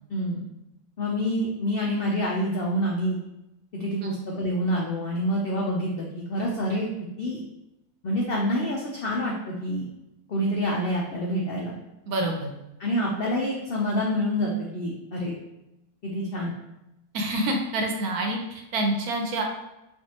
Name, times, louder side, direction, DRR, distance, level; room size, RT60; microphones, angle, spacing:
voice 1, 0.1-0.4 1.0-3.2 3.7-6.9 7.2-7.4 8.0-9.9 10.3-11.7 12.8-15.4 16.0-16.5, equal, 85° left, -2 dB, 0.5 m, -27 dB
voice 2, 12.1-12.5 17.1-19.4, right 1 dB, 75° right, 2 dB, 1.0 m, -27 dB
4.4 x 2.5 x 2.8 m, 0.94 s
omnidirectional pair, 1.6 m